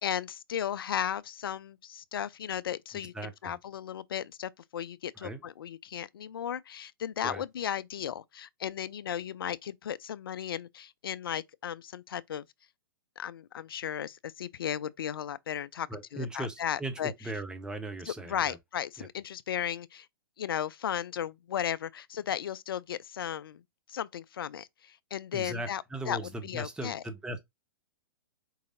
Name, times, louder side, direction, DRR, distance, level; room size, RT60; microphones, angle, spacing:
voice 1, 0.0-12.4 13.2-15.9 16.1-17.1 18.1-20.1 20.4-23.6 23.9-27.0, left 9 dB, 75° left, 0.4 m, -35 dB
voice 2, 3.1-3.6 5.2-5.4 7.2-7.4 15.9-18.6 19.0-19.1 25.3-27.4, right 1 dB, 5° right, 0.8 m, -38 dB
4.7 x 4.1 x 2.5 m
hypercardioid pair, 115°, 12 cm